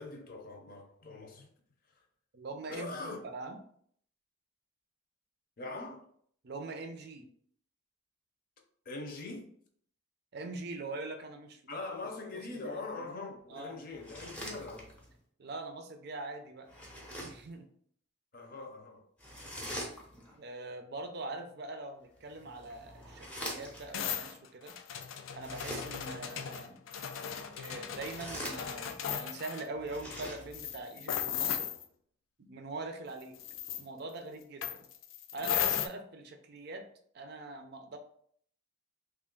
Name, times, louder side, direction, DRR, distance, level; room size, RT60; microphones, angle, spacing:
voice 1, 0.0-1.5 2.7-3.2 5.6-6.0 8.8-9.5 11.7-14.9 18.3-19.1 19.4-19.9, left 3 dB, 45° left, 0.7 m, -42 dB
voice 2, 2.3-3.6 6.4-7.3 10.3-11.6 12.3-13.0 13.5-13.8 15.4-16.7 17.2-17.7 20.4-24.8 25.3-26.8 27.6-31.7 32.4-33.4 33.8-34.9 35.3-36.9 37.1-38.0, right 2 dB, 55° right, 0.5 m, -43 dB
sound 1, 13.9-15.2 16.7-17.5 19.2-20.4 22.2-24.0 25.4-26.2 27.8-29.1 29.7-30.8, equal, 5° left, 0.7 m, -44 dB
sound 2, 23.9-29.7 30.1-30.3 30.5-31.8 33.3-33.8 34.6-35.9, left 9 dB, 85° left, 0.4 m, -36 dB
3.3 x 2.4 x 3.7 m
head